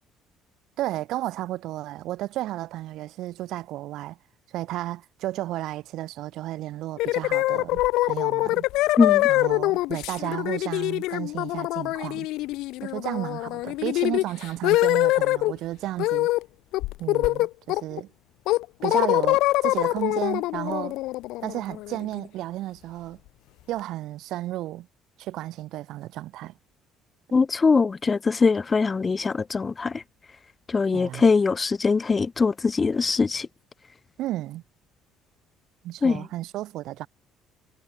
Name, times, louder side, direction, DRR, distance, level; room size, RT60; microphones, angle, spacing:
voice 1, 0.8-4.2 4.5-8.7 9.3-12.3 12.8-16.3 17.0-18.1 18.8-21.0 21.4-23.2 23.7-24.9 25.2-26.5 30.9-31.2 34.2-34.6 35.8-37.1, right 15 dB, 60° right, 2.8 m, -33 dB
sound 1, 7.0-15.5 16.0-16.4 16.7-18.0 18.5-22.2, left 18 dB, 75° left, 2.8 m, -24 dB
voice 2, 9.0-9.3 27.3-30.0 30.7-33.5 36.0-36.2, left 4 dB, 20° left, 0.5 m, -22 dB
cardioid pair, 165°, 0 cm